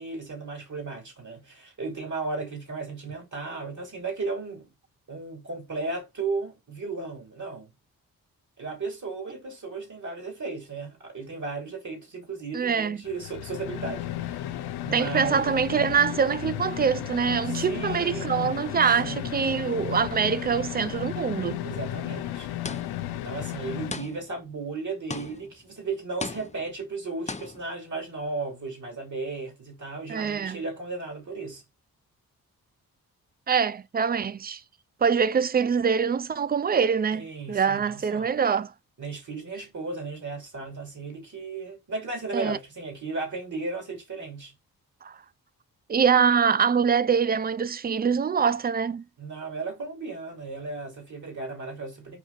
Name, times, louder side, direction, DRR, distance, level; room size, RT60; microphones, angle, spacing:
voice 1, 0.0-4.7 5.1-7.7 8.6-14.5 14.8-15.6 17.4-19.6 21.6-22.6 23.1-31.6 37.1-38.4 39.0-44.5 49.2-52.2, right 3 dB, 50° right, 2.9 m, -35 dB
voice 2, 12.5-13.0 14.9-21.6 30.1-30.6 33.5-34.6 35.0-38.7 42.3-42.6 45.0-45.2 45.9-49.0, right 6 dB, 25° right, 0.3 m, -24 dB
sound 1, 13.0-23.9, left 13 dB, 90° left, 0.5 m, -34 dB
sound 2, 22.6-23.1 23.9-24.5 25.1-25.6 26.2-26.8 27.3-27.7, left 3 dB, 20° left, 0.7 m, -37 dB
4.7 x 2.8 x 4.0 m
supercardioid pair, 45°, 38 cm